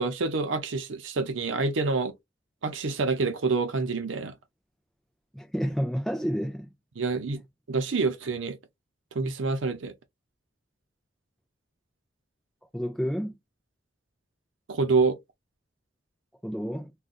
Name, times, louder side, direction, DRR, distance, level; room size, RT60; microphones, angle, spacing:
voice 1, 0.0-2.1 2.6-4.4 7.0-7.4 7.7-8.6 9.1-9.9 14.7-15.2, right 4 dB, 80° right, 0.6 m, -27 dB
voice 2, 5.3-6.7 12.7-13.3 16.4-16.9, equal, ahead, 0.4 m, -30 dB
3.8 x 2.3 x 2.4 m
head